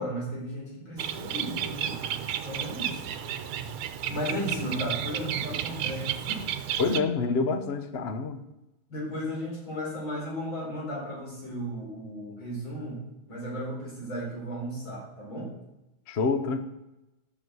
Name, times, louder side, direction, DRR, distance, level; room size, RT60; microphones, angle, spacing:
voice 1, 0.0-2.0 2.4-3.2 4.1-6.4 8.9-15.5, equal, 70° left, -3 dB, 5.1 m, -35 dB
Bird, 1.0-7.0, right 10 dB, 90° right, 1.6 m, -32 dB
voice 2, 6.8-8.4 16.1-16.6, left 4 dB, 50° left, 9 dB, 0.7 m, -27 dB
12.0 x 6.3 x 7.9 m, 0.96 s
omnidirectional pair, 2.3 m